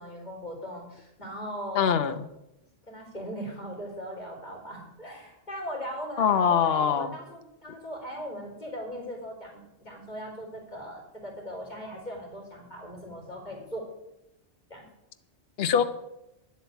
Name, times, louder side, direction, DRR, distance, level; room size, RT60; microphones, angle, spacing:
voice 1, 0.0-1.9 2.9-13.9 14.7-14.9, equal, 40° left, -1 dB, 3.7 m, -39 dB
voice 2, 1.7-2.2 6.2-7.1 15.6-15.8, left 7 dB, 60° left, 9 dB, 1.0 m, -23 dB
10.5 x 7.9 x 8.2 m, 0.89 s
omnidirectional pair, 1.2 m